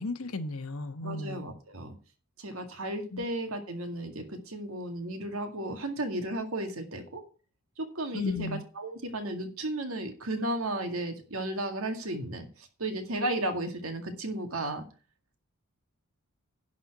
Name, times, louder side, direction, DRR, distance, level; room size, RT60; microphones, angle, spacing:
voice 1, 0.0-1.5 3.1-3.2 8.1-8.6, left 3 dB, 80° left, 10 dB, 1.1 m, -34 dB
voice 2, 1.0-2.0 2.4-7.2 7.8-8.5 8.8-14.8, right 1 dB, 75° right, 5 dB, 2.1 m, -34 dB
11.0 x 4.4 x 7.8 m, 0.37 s
head